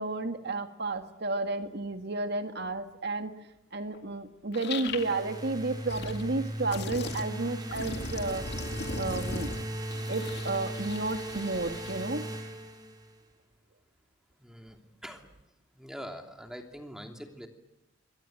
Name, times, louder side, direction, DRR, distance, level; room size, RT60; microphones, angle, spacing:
voice 1, 0.0-3.3 3.7-8.5 9.0-9.5 10.1-12.2, right 2 dB, 60° right, 7 dB, 2.1 m, -32 dB
sound 1, 3.9-4.0 4.5-5.2 5.7-6.2 6.7-7.2 7.7-12.1, left 3 dB, 60° left, 2.2 m, -39 dB
sound 2, 4.9-13.2, right 1 dB, 20° right, 5.4 m, -38 dB
voice 2, 14.4-15.3 15.8-17.5, equal, 5° right, 3 dB, 3.0 m, -44 dB
27.5 x 23.0 x 9.0 m, 0.91 s
head